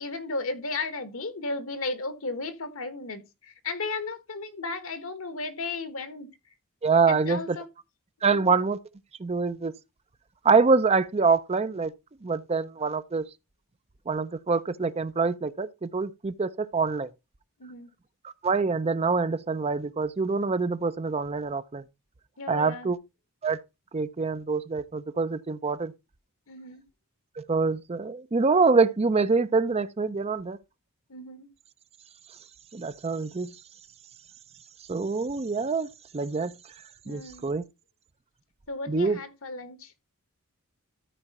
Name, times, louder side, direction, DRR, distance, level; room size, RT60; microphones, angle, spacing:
voice 1, 0.0-6.3 7.1-7.7 8.3-8.5 17.6-17.9 22.4-22.9 26.5-26.8 31.1-31.5 37.0-37.5 38.7-39.9, left 3 dB, 65° left, 1.3 m, -35 dB
voice 2, 6.8-7.6 8.2-8.8 9.2-9.7 10.4-11.9 12.2-13.3 14.1-17.1 18.4-21.8 22.5-23.0 23.4-23.6 23.9-25.9 27.4-30.6 32.7-33.5 34.9-35.9 36.1-36.5 37.1-37.6 38.9-39.2, right 4 dB, 30° right, 0.5 m, -25 dB
13.5 x 4.9 x 4.1 m
head